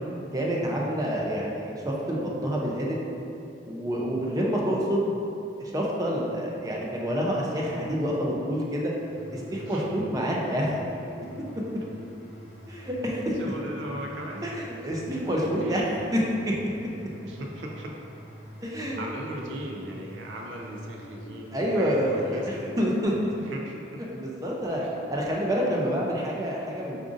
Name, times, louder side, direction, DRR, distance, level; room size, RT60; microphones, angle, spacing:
voice 1, 0.3-3.0 3.6-5.1 5.6-8.9 9.3-10.7 12.7-13.3 14.4-15.8 16.1-16.5 18.6-19.0 21.5-23.3 24.1-24.8 25.1-27.0, equal, 20° right, -3 dB, 0.4 m, -27 dB
sound 1, 9.0-23.0, left 1 dB, 75° left, 0.6 m, -44 dB
voice 2, 9.3-9.9 13.4-14.5 15.6-15.7 17.3-17.9 18.9-22.8 23.4-24.0, right 1 dB, 85° right, 0 dB, 0.4 m, -38 dB
4.8 x 2.5 x 2.5 m, 2.6 s
head